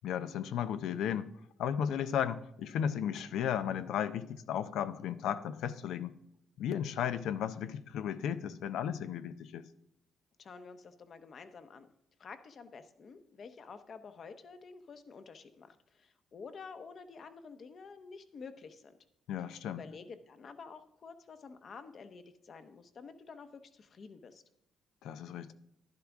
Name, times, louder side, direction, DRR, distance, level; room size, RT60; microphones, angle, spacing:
voice 1, 0.0-1.3 1.6-6.1 6.6-9.6 19.3-19.8 25.0-25.5, left 9 dB, 80° left, 12 dB, 0.6 m, -34 dB
voice 2, 10.4-11.9 12.2-18.9 19.7-24.4, left 5 dB, 50° left, 9 dB, 1.0 m, -50 dB
11.0 x 11.0 x 3.6 m, 0.77 s
cardioid pair, 90°, 0 cm